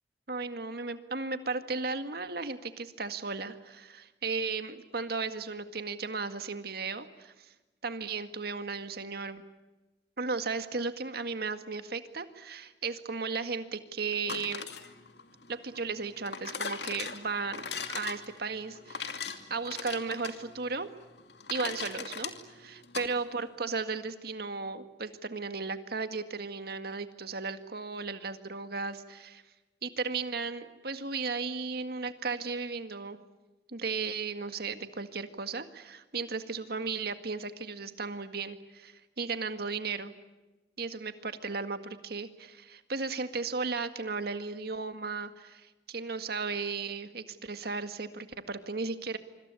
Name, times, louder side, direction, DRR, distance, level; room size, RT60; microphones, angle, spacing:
voice 1, 0.3-7.5 7.8-9.4 10.2-14.7 15.5-17.6 17.9-20.9 21.5-29.4 29.8-33.2 33.7-40.1 40.8-49.2, right 4 dB, 60° right, 9 dB, 1.9 m, -35 dB
sound 1, 14.1-23.1, left 6 dB, 65° left, 2.5 m, -40 dB
26.0 x 25.5 x 8.4 m, 1.1 s
head